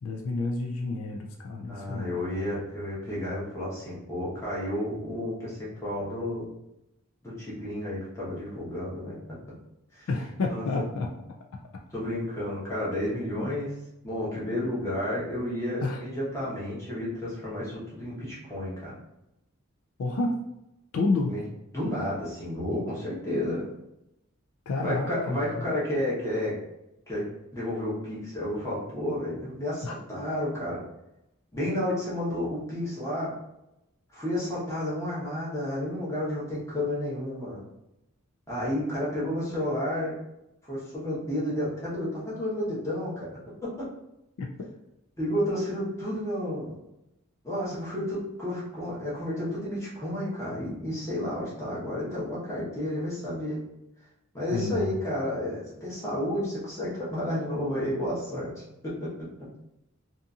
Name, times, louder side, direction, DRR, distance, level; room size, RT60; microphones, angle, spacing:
voice 1, 0.0-2.2 10.1-11.1 13.4-13.5 15.8-16.0 20.0-20.4 20.9-21.3 24.7-25.4 29.8-29.9 44.4-44.5 54.5-54.9, left 3 dB, 75° left, 2 dB, 0.4 m, -29 dB
voice 2, 1.7-6.4 7.2-9.1 9.9-10.1 10.5-10.6 11.9-13.7 14.0-18.9 21.3-21.4 21.7-23.7 24.8-26.5 27.1-27.2 27.5-30.8 31.5-33.3 34.1-37.6 38.5-40.1 40.6-43.3 43.6-43.8 45.2-46.7 47.4-53.6 54.3-58.9, left 1 dB, 15° left, -8 dB, 0.9 m, -31 dB
2.7 x 2.5 x 2.4 m, 0.88 s
head